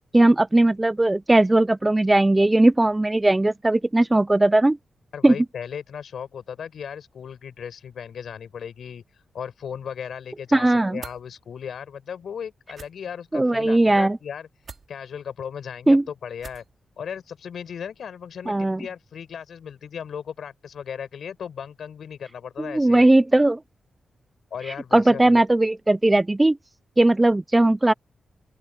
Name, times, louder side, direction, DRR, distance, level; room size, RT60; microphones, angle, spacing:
voice 1, 0.1-4.8 5.2-5.3 10.5-11.0 13.3-14.2 15.9-16.0 18.5-18.8 22.6-23.6 24.9-26.6 27.0-27.9, right 2 dB, 15° right, 0.4 m, -18 dB
voice 2, 5.1-9.0 9.3-14.5 14.9-16.6 17.0-23.0 24.5-25.4, left 7 dB, 75° left, 6.1 m, -36 dB
sound 1, 11.0-11.2 12.7-12.9 14.6-14.9 16.4-16.7, right 5 dB, 45° right, 5.1 m, -41 dB
open air
wide cardioid pair, 115°, 0 cm